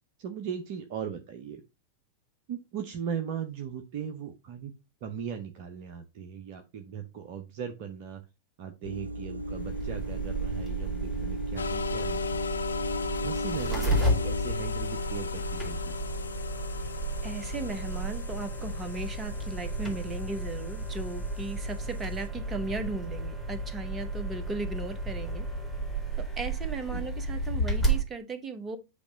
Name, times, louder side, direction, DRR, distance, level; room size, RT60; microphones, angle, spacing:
voice 1, 0.2-1.6 2.5-4.7 5.0-8.2 8.6-12.4 13.2-16.0 26.9-27.0, right 7 dB, 45° right, 6 dB, 0.7 m, -38 dB
sound 1, 8.8-14.5, right 1 dB, 75° right, 0.4 m, -37 dB
sound 2, 9.4-28.0, right 2 dB, 5° right, 2.3 m, -33 dB
sound 3, 11.6-22.3, left 6 dB, 75° left, 0.4 m, -37 dB
voice 2, 17.2-25.5 26.4-28.8, right 3 dB, 20° right, 10 dB, 1.1 m, -36 dB
8.2 x 2.9 x 5.1 m, 0.27 s
figure-of-eight pair, 90°, 0 cm